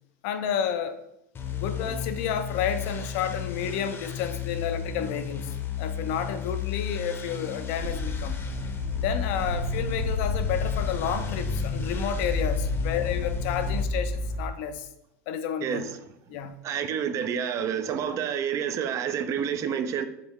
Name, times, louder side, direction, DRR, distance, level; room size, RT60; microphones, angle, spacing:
voice 1, 0.2-1.0 1.5-8.4 9.0-14.9 15.3-15.8 16.3-16.5, left 8 dB, 65° left, 0.4 m, -31 dB
sound 1, 1.3-13.8, left 7 dB, 30° left, 0.7 m, -33 dB
sound 2, 7.8-14.5, left 2 dB, 65° right, 1.1 m, -31 dB
voice 2, 15.6-15.9 16.6-20.1, right 8 dB, 40° right, 0.4 m, -28 dB
3.7 x 3.4 x 3.0 m
hypercardioid pair, 85°, 8 cm